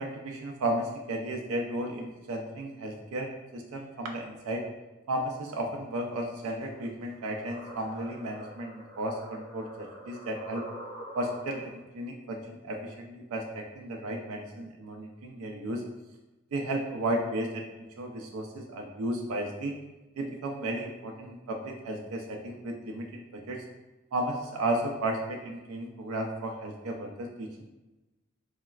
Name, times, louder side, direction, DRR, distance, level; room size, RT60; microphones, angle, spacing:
voice 1, 0.0-4.6 5.1-10.6 11.1-15.8 16.5-19.7 20.2-23.6 24.1-27.6, right 1 dB, 80° right, 1 dB, 0.4 m, -34 dB
sound 1, 6.7-11.8, right 1 dB, 10° left, 0.9 m, -45 dB
3.9 x 2.0 x 2.3 m, 1.1 s
head